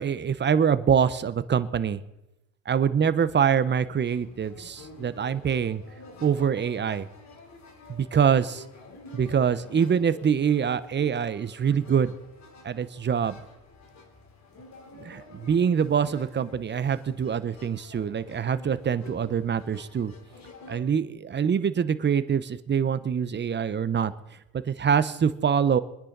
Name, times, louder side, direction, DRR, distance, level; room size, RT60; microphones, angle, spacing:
voice 1, 0.0-2.0 2.7-5.8 6.2-7.1 7.9-8.6 9.1-12.1 12.6-13.4 15.0-20.1 20.7-24.1 24.5-25.8, right 7 dB, 30° right, 14 dB, 1.0 m, -24 dB
sound 1, 3.5-20.8, left 3 dB, 50° left, 3.7 m, -49 dB
25.5 x 10.0 x 4.1 m, 0.91 s
supercardioid pair, 90°, 36 cm